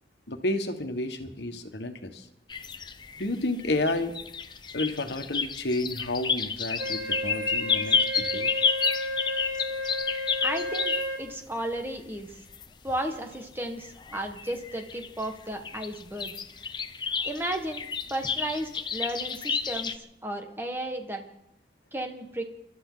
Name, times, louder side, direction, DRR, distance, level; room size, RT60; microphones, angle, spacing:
voice 1, 0.3-2.3 3.2-4.1 4.7-8.5, left 2 dB, 80° left, 6 dB, 1.6 m, -31 dB
sound 1, 2.5-11.3 11.7-12.7 13.4-13.5 13.8-15.2 15.5-20.0, left 5 dB, 25° left, 0.7 m, -30 dB
Wind instrument woodwind instrument, 6.8-11.2, left 1 dB, 55° right, 4.1 m, -33 dB
voice 2, 10.4-12.4 12.8-16.3 17.2-21.2 21.9-22.4, right 1 dB, 10° right, 4 dB, 1.6 m, -34 dB
28.0 x 13.0 x 4.0 m, 0.83 s
head